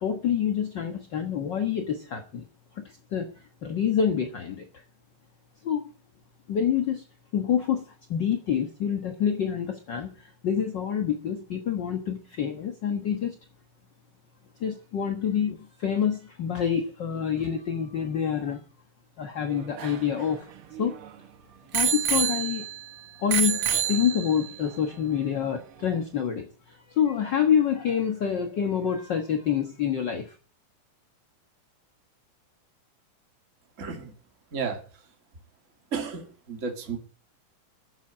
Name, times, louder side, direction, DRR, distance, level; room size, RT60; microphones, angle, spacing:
voice 1, 0.0-2.5 2.7-2.8 3.1-3.3 3.6-4.7 5.6-5.9 6.5-7.0 7.3-13.3 14.6-18.6 19.2-20.5 20.8-20.9 21.7-22.7 23.2-30.4, left 8 dB, 50° left, 6 dB, 1.4 m, -27 dB
Bicycle bell, 19.4-21.1 21.7-22.9 23.3-24.6 25.3-25.4, right 8 dB, 80° right, 1.2 m, -28 dB
voice 2, 33.8-34.1 34.5-34.8 35.9-37.0, right 5 dB, 25° right, 3 dB, 2.7 m, -32 dB
13.5 x 7.3 x 9.6 m, 0.39 s
omnidirectional pair, 3.8 m